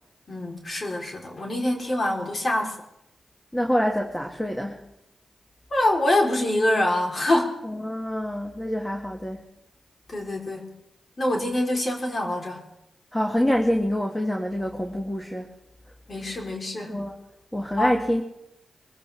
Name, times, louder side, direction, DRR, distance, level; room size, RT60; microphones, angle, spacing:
voice 1, 0.3-2.7 5.7-7.5 10.1-10.7 11.2-12.6 16.1-17.0 17.8-18.0, left 1 dB, 50° left, 0 dB, 3.6 m, -25 dB
voice 2, 3.5-4.8 7.6-9.5 13.1-15.5 16.9-17.2 17.5-18.2, equal, 10° left, 2 dB, 1.9 m, -26 dB
23.5 x 15.0 x 3.5 m, 0.87 s
cardioid pair, 45°, 0 cm